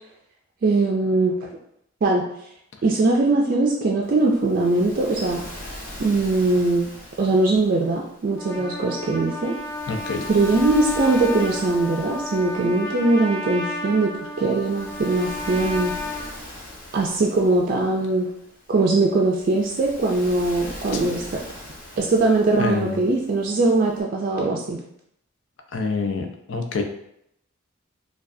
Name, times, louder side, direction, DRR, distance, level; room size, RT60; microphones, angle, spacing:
voice 1, 0.6-1.5 2.0-2.3 2.8-5.4 6.0-6.9 7.2-9.5 10.3-16.0 16.9-18.3 18.7-21.4 22.0-24.8, right 2 dB, 45° right, -1 dB, 0.3 m, -21 dB
Waves surf, 4.0-24.0, left 1 dB, 45° left, 1.1 m, -41 dB
Trumpet, 8.3-16.3, left 2 dB, 15° left, 0.8 m, -32 dB
voice 2, 9.9-10.3 22.6-23.0 25.7-26.8, left 4 dB, 65° left, 4 dB, 0.5 m, -26 dB
4.7 x 2.3 x 2.6 m, 0.75 s
head